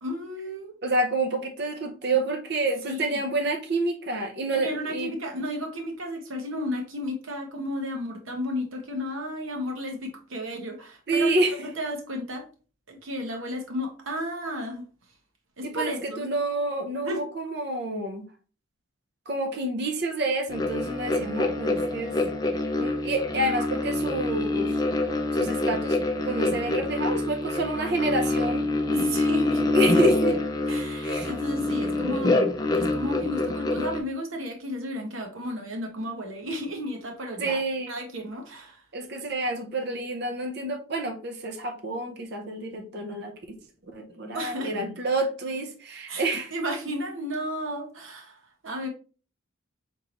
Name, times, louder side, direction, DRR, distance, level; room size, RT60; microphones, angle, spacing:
voice 1, 0.0-0.7 2.9-3.2 4.5-11.3 11.6-12.5 12.9-14.8 15.6-16.3 17.0-17.2 28.9-29.6 30.3-30.4 30.7-32.4 32.7-37.6 37.9-38.8 44.3-44.7 46.1-46.3 46.5-48.4 48.6-48.9, equal, 80° right, 2 dB, 1.1 m, -33 dB
voice 2, 0.8-5.1 11.1-11.6 15.6-18.2 19.3-22.2 22.8-24.8 25.3-26.0 26.2-28.6 29.7-30.3 31.0-31.3 37.4-37.9 38.9-43.6 43.9-46.5, right 2 dB, 55° right, 4 dB, 0.6 m, -28 dB
sound 1, 20.5-34.0, left 2 dB, 20° left, 0.4 m, -26 dB
3.9 x 3.7 x 2.9 m, 0.37 s
head